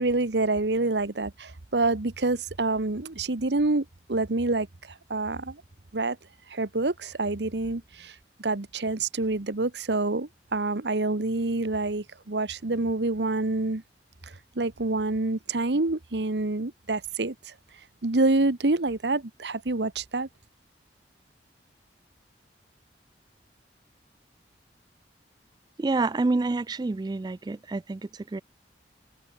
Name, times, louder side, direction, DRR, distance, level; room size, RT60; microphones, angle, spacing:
voice 1, 0.0-4.7 5.1-5.6 5.9-6.2 6.5-8.1 8.4-13.8 14.6-17.5 18.0-20.3, right 2 dB, 70° right, 1.2 m, -27 dB
voice 2, 25.8-28.4, right 3 dB, 25° right, 0.3 m, -28 dB
head